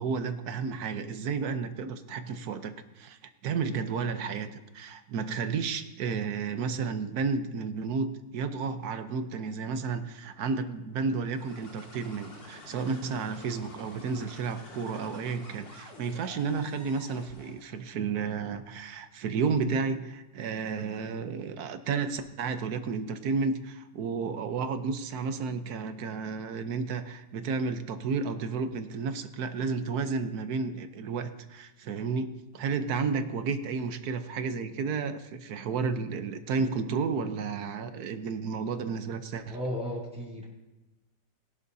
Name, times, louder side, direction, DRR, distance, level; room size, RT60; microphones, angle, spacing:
voice 1, 0.0-39.6, right 5 dB, 65° right, 9 dB, 1.3 m, -32 dB
sound 1, 11.2-17.8, left 2 dB, 90° left, 2.9 m, -49 dB
voice 2, 39.5-40.5, left 1 dB, 5° right, -4 dB, 3.2 m, -34 dB
21.5 x 11.5 x 2.8 m, 1.1 s
omnidirectional pair, 1.9 m